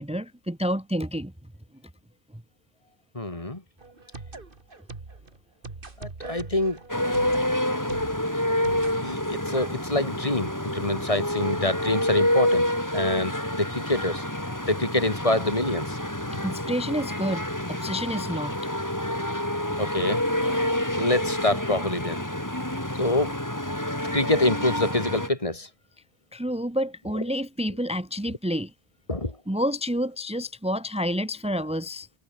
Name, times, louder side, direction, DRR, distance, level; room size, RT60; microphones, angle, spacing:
voice 1, 0.0-1.3 16.4-18.5 26.3-28.7 29.5-32.1, equal, 5° right, 1.3 m, -29 dB
voice 2, 3.1-3.6 6.0-6.8 9.0-12.7 12.9-14.2 14.7-16.0 19.8-20.2 21.0-22.2 23.0-23.3 24.1-25.7 29.1-29.3, left 2 dB, 30° left, 2.5 m, -26 dB
sound 1, 3.8-9.0, right 3 dB, 55° right, 2.6 m, -42 dB
sound 2, 6.9-25.3, left 1 dB, 15° left, 3.9 m, -28 dB
omnidirectional pair, 1.1 m